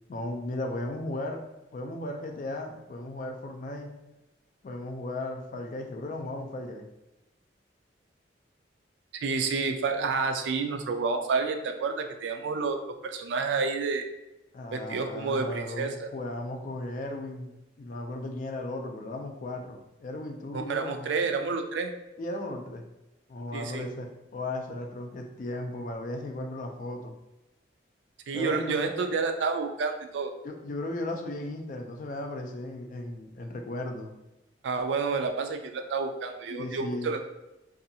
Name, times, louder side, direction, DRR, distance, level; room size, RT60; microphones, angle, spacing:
voice 1, 0.1-1.4 1.7-3.9 4.6-6.9 14.5-21.1 22.2-22.8 23.3-27.1 28.3-28.9 30.4-34.1 36.5-37.1, left 1 dB, 45° left, 4 dB, 0.3 m, -36 dB
voice 2, 9.1-14.1 14.7-16.1 20.5-21.9 23.5-23.9 28.3-30.3 34.6-37.3, right 4 dB, 70° right, 5 dB, 0.3 m, -29 dB
2.6 x 2.3 x 2.6 m, 0.97 s
head